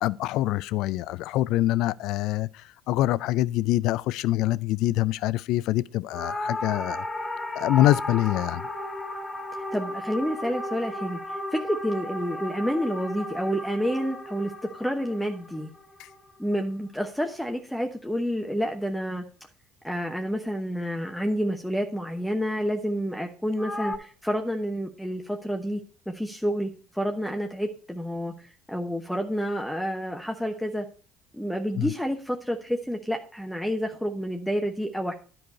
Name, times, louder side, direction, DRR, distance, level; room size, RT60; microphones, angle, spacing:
voice 1, 0.0-7.0 7.6-8.6 16.0-16.1 31.8-31.9, left 15 dB, 65° left, 0.3 m, -25 dB
sound 1, 6.1-16.6 23.6-23.9, left 1 dB, 20° left, 1.4 m, -34 dB
voice 2, 9.7-15.7 16.4-19.2 19.8-25.8 26.1-28.3 28.7-30.9 31.3-35.1, equal, 5° left, 0.9 m, -29 dB
10.5 x 4.6 x 5.4 m
hypercardioid pair, 60°, 0 cm